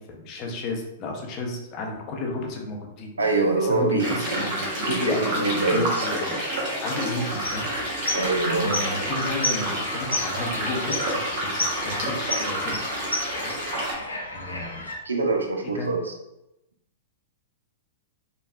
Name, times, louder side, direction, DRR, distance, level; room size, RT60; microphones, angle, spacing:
voice 1, 0.0-6.4 6.8-7.7 8.6-12.8 13.4-13.5 14.3-14.9 15.6-15.9, left 2 dB, 35° left, 1 dB, 0.6 m, -32 dB
voice 2, 3.2-4.6 4.8-6.1 8.1-8.7 15.0-16.1, right 3 dB, 80° right, 3 dB, 0.5 m, -25 dB
sound 1, 4.0-13.9, right 1 dB, 45° right, 1.0 m, -29 dB
sound 2, 7.3-15.0, left 1 dB, 85° left, 0.6 m, -32 dB
3.4 x 2.3 x 2.3 m, 0.89 s
figure-of-eight pair, 105°, 0 cm